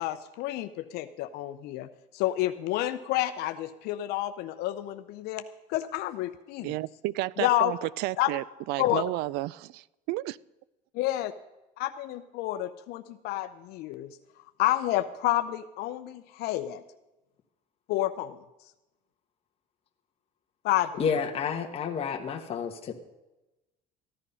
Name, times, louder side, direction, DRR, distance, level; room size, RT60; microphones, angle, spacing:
voice 1, 0.0-1.9 2.1-5.4 5.7-6.8 7.4-7.7 8.2-8.3 8.8-9.0 10.9-11.3 11.8-14.2 14.6-16.8 17.9-18.4 20.6-20.9, left 15 dB, 75° left, 0.7 m, -29 dB
voice 2, 6.6-10.4, right 17 dB, 75° right, 0.4 m, -32 dB
voice 3, 21.0-22.9, left 6 dB, 35° left, 1.3 m, -30 dB
14.5 x 11.0 x 5.5 m
cardioid pair, 130°, 17 cm